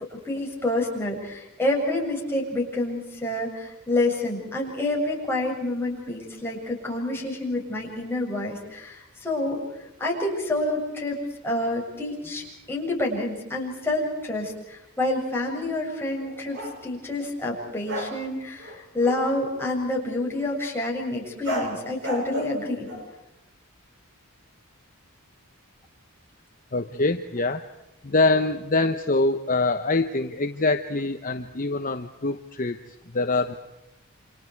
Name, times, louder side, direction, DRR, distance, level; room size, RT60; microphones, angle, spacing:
voice 1, 0.2-9.6 10.0-22.9, left 2 dB, 10° left, -2 dB, 7.1 m, -28 dB
sound 1, 16.1-16.8 17.8-18.2 18.6-19.3 21.4-23.1, equal, 55° right, 6.4 m, -33 dB
voice 2, 26.7-27.6 28.0-32.8 33.1-33.5, left 2 dB, 40° left, 7 dB, 1.0 m, -24 dB
29.5 x 26.5 x 4.7 m, 0.91 s
head